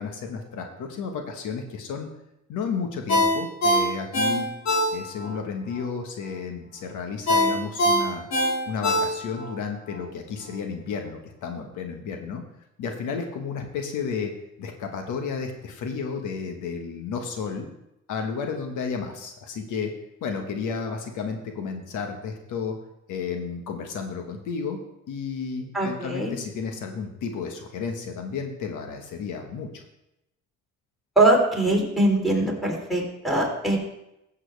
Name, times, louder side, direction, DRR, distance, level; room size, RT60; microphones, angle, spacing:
voice 1, 0.0-2.1 2.5-4.5 4.9-8.3 8.7-12.4 12.8-14.3 14.6-17.7 18.1-19.9 20.2-22.8 23.1-24.8 25.1-29.8, left 5 dB, 80° left, 4 dB, 1.4 m, -32 dB
Ringtone, 3.1-5.3 5.7-5.8 7.3-9.5 9.9-10.0, equal, 65° left, 3.6 m, -22 dB
voice 2, 25.7-26.3 31.1-33.8, right 2 dB, ahead, -1 dB, 3.4 m, -22 dB
14.5 x 7.5 x 3.4 m, 0.86 s
cardioid pair, 90°, 30 cm